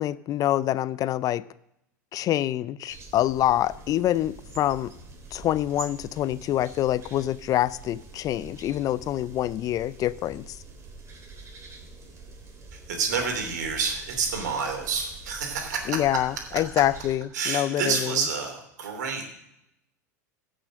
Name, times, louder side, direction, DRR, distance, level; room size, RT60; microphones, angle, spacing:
voice 1, 0.0-1.4 2.1-4.9 5.3-10.6 15.9-18.1, left 13 dB, 40° left, 18 dB, 0.4 m, -26 dB
sound 1, 2.9-17.1, right 3 dB, 30° right, 3.1 m, -45 dB
voice 2, 12.7-16.2 16.5-16.6 17.3-19.4, right 5 dB, 75° right, 4 dB, 2.9 m, -29 dB
16.0 x 6.4 x 6.4 m, 0.81 s
hypercardioid pair, 90°, 10 cm